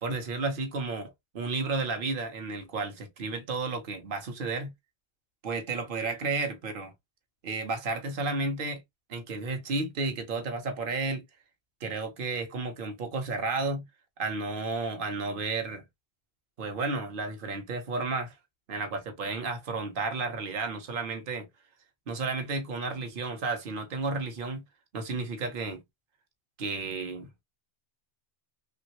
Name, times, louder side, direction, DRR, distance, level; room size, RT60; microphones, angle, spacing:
voice 1, 0.0-4.7 5.4-6.9 7.4-8.8 9.1-11.2 11.8-13.8 14.2-15.8 16.6-18.3 18.7-21.5 22.1-24.6 24.9-25.8 26.6-27.4, right 3 dB, 55° right, 0.9 m, -32 dB
3.0 x 2.5 x 2.8 m
omnidirectional pair, 1.2 m